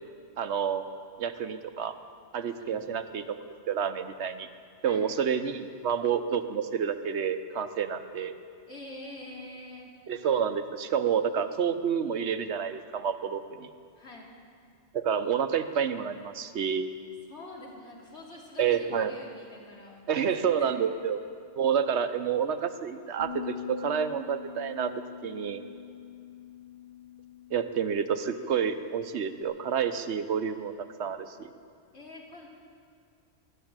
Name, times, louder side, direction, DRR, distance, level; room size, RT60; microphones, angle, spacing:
voice 1, 0.4-0.8 1.2-2.0 2.3-4.5 4.8-8.3 10.1-13.7 14.9-16.9 18.6-19.1 20.1-21.2 21.6-24.9 25.2-25.6 27.5-31.5, right 7 dB, 75° right, 10 dB, 1.1 m, -29 dB
voice 2, 8.7-10.0 13.9-14.3 17.3-20.7 31.9-32.5, left 2 dB, 75° left, -3 dB, 3.2 m, -45 dB
sound 1, 23.2-29.4, left 8 dB, 60° left, 3.1 m, -44 dB
12.5 x 12.5 x 8.8 m, 2.4 s
omnidirectional pair, 1.2 m